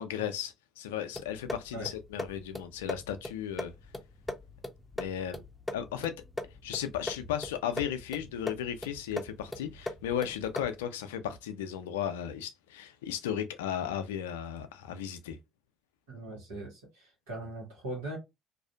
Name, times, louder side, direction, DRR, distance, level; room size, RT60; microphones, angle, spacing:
voice 1, 0.0-3.7 5.0-5.4 5.7-6.1 6.6-15.4, left 9 dB, 80° left, 0.3 m, -35 dB
sound 1, 1.1-10.9, left 1 dB, 15° left, 0.5 m, -41 dB
voice 2, 16.1-18.2, right 1 dB, 80° right, 1.0 m, -40 dB
2.5 x 2.3 x 2.2 m
hypercardioid pair, 55°, 0 cm